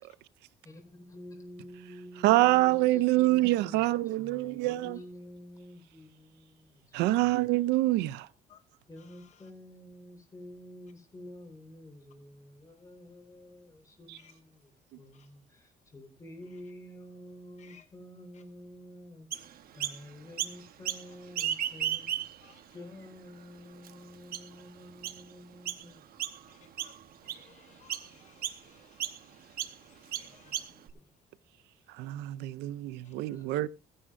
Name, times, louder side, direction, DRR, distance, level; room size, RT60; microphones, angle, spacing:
voice 1, 0.6-7.4 8.9-22.3 22.7-26.1 30.2-31.0 33.3-33.7, equal, 20° left, 4.2 m, -50 dB
voice 2, 2.2-5.0 6.9-8.3 32.0-33.7, right 17 dB, 90° right, 0.5 m, -26 dB
Chirp tweet, 19.3-20.0 20.4-21.0 21.3-22.5 23.1-23.2 23.8-23.9 24.3-24.6 25.0-25.2 25.7-25.9 26.2-26.5 26.8-27.5 27.9-28.1 28.4-28.6 29.0-29.2 29.6-29.7 30.1-30.9, right 10 dB, 60° right, 1.1 m, -34 dB
voice 3, 26.5-26.9 27.2-30.6, left 8 dB, 45° left, 0.7 m, -60 dB
16.0 x 9.9 x 2.5 m
cardioid pair, 110°, 17 cm